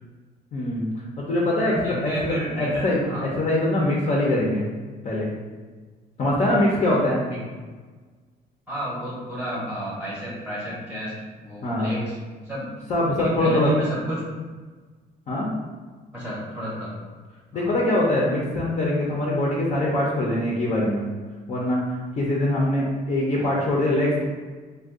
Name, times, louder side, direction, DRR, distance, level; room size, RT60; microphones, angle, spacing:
voice 1, 0.5-0.9 1.2-4.7 5.0-5.3 6.2-7.2 11.6-11.9 12.9-13.7 15.3-15.5 17.5-21.1 21.5-21.8 22.2-24.2, left 1 dB, 40° left, -4 dB, 0.6 m, -23 dB
voice 2, 1.6-3.3 7.3-7.4 8.7-12.2 12.4-12.7 13.2-14.3 16.1-16.9 17.5-17.7 23.4-23.6, equal, 10° right, -8 dB, 0.8 m, -31 dB
2.5 x 2.3 x 3.5 m, 1.4 s
cardioid pair, 110°, 17 cm